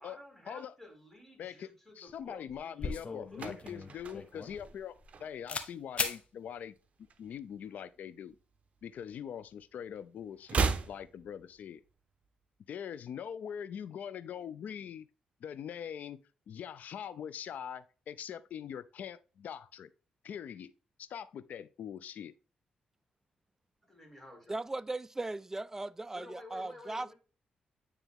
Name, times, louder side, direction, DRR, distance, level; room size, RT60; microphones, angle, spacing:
voice 1, 0.0-3.4 3.7-4.3 23.8-24.6 26.1-27.1, left 1 dB, 10° left, 3.0 m, -53 dB
voice 2, 1.4-1.7 2.0-4.9 5.2-6.7 7.2-8.4 8.8-11.8 12.7-15.1 15.4-16.2 16.5-19.9 20.2-20.7 21.0-22.3, left 8 dB, 75° left, 0.4 m, -42 dB
sound 1, 2.1-2.2 2.5-5.2 5.5-5.7 6.0-6.2, left 4 dB, 45° left, 0.9 m, -37 dB
sound 2, 3.2-5.7 6.0-6.3 6.5-8.0 8.3-9.6 9.9-12.0 12.3-12.4, right 5 dB, 50° right, 0.7 m, -37 dB
voice 3, 24.5-27.1, right 2 dB, 15° right, 0.3 m, -38 dB
9.1 x 3.3 x 3.6 m
cardioid pair, 75°, 3 cm